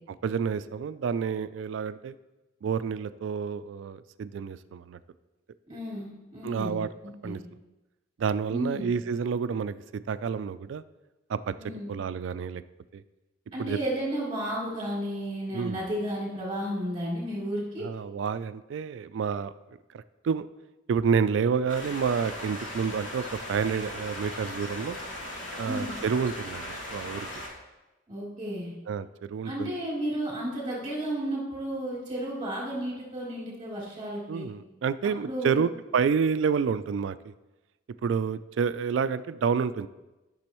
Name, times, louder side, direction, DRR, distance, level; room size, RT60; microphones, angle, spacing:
voice 1, 0.2-2.1 2.6-5.0 6.4-6.9 7.2-7.4 8.2-9.8 10.1-10.8 11.3-11.5 11.9-12.6 12.9-13.0 13.6-13.8 15.5-15.8 17.8-19.5 19.9-20.5 20.9-25.0 25.6-27.3 28.9-29.7 34.3-37.3 38.0-39.9, right 6 dB, 70° right, 14 dB, 0.3 m, -29 dB
voice 2, 5.7-6.8 7.2-7.4 8.5-8.9 11.6-11.9 13.5-17.8 25.6-25.9 28.1-28.7 29.4-34.5 35.0-35.6, equal, 25° right, -6 dB, 2.9 m, -33 dB
sound 1, 21.7-27.5, left 1 dB, 70° left, 1.8 m, -38 dB
12.0 x 6.1 x 3.0 m, 1.1 s
head